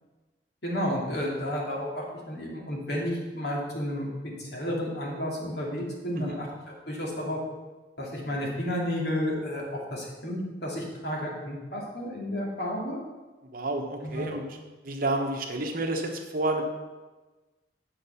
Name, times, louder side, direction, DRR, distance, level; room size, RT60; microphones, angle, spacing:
voice 1, 0.6-6.5 6.9-7.4 8.0-9.6 9.9-13.0 14.0-14.4, equal, 65° left, -2 dB, 2.3 m, -32 dB
voice 2, 13.5-14.4 14.8-16.6, right 2 dB, 55° right, 3 dB, 1.1 m, -30 dB
8.8 x 5.9 x 5.6 m, 1.2 s
head